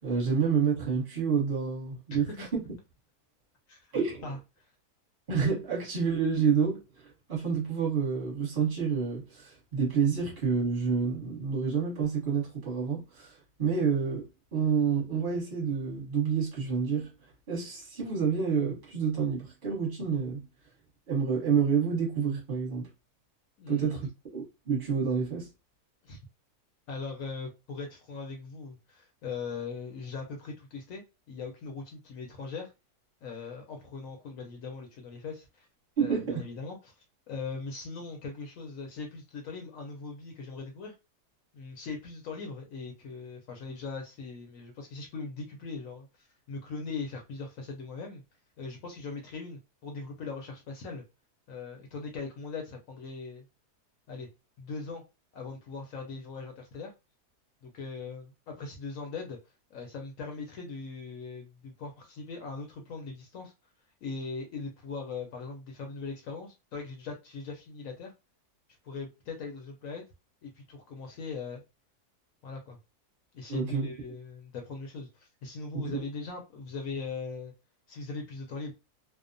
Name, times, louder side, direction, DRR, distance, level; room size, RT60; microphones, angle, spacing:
voice 1, 0.0-2.6 3.9-4.3 5.3-20.5 21.1-22.9 23.7-25.5 36.0-36.4 73.5-73.9 75.7-76.0, right 6 dB, 35° right, 1.0 m, -29 dB
voice 2, 4.2-4.7 23.6-24.0 26.0-26.2 26.9-31.0 31.3-32.7 33.2-35.7 36.0-36.9 37.3-40.9 41.5-48.2 48.6-51.0 51.5-53.4 54.1-54.3 54.6-55.0 55.3-56.9 57.6-59.4 59.7-63.5 64.0-68.1 68.8-70.0 70.4-71.6 72.4-72.8 73.3-77.5 77.9-78.7, left 4 dB, 65° left, 0.9 m, -40 dB
2.7 x 2.0 x 2.5 m
omnidirectional pair, 1.7 m